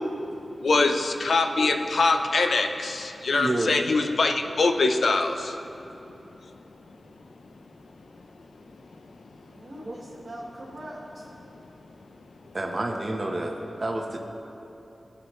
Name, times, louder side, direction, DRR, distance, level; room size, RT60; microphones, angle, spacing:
voice 1, 0.6-5.5, left 3 dB, 80° left, 6 dB, 0.7 m, -23 dB
voice 2, 3.3-3.8 9.8-9.9 12.5-14.2, right 1 dB, 40° right, 1 dB, 1.0 m, -29 dB
voice 3, 9.3-11.3, right 1 dB, 60° right, -7 dB, 1.8 m, -42 dB
19.5 x 8.1 x 3.2 m, 2.9 s
wide cardioid pair, 80°, 0 cm